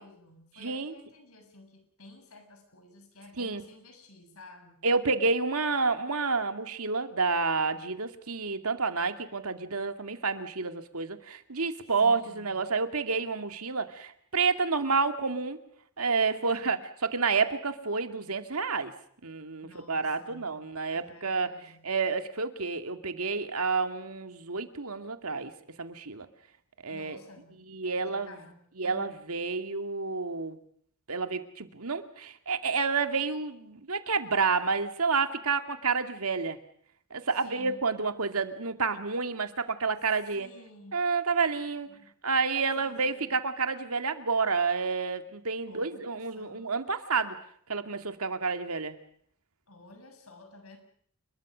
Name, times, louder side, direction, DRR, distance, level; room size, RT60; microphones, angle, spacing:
voice 1, 0.0-4.9 12.0-12.7 16.4-16.8 19.6-21.9 26.9-27.6 28.0-29.2 37.3-37.8 40.3-41.0 41.8-42.1 42.8-43.4 45.7-46.7 49.7-50.8, left 2 dB, 80° left, 6 dB, 7.3 m, -52 dB
voice 2, 0.6-0.9 3.4-3.6 4.8-15.6 16.0-16.8 17.1-18.9 19.2-21.5 21.8-25.5 25.8-26.3 26.8-27.2 27.7-28.3 28.8-30.6 31.1-36.6 37.1-40.5 40.9-41.9 42.2-47.4 47.7-49.0, right 4 dB, 85° right, 8 dB, 2.2 m, -29 dB
29.0 x 22.0 x 6.3 m, 0.63 s
head